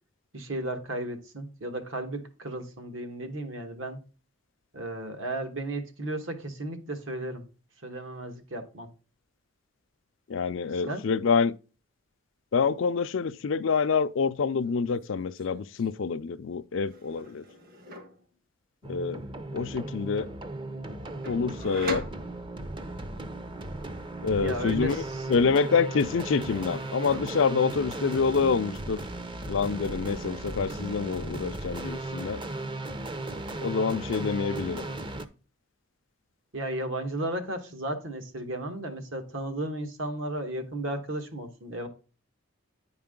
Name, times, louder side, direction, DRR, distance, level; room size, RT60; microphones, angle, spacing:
voice 1, 0.3-4.0 4.7-7.4 7.8-8.9 10.8-11.0 24.4-25.3 36.5-41.9, right 1 dB, 70° right, 1.5 m, -34 dB
voice 2, 10.3-11.6 12.5-17.4 18.8-19.2 19.5-20.3 21.2-22.1 24.2-25.0 25.3-29.0 29.5-32.4 33.6-34.9, left 5 dB, 70° left, 0.4 m, -27 dB
sound 1, 14.5-14.8 15.1-15.9 16.9-18.3 21.2-22.9 25.1-25.7 26.0-27.7, equal, 45° right, 1.2 m, -42 dB
sound 2, 18.8-35.2, right 2 dB, 25° right, 0.6 m, -36 dB
9.6 x 4.7 x 3.7 m
head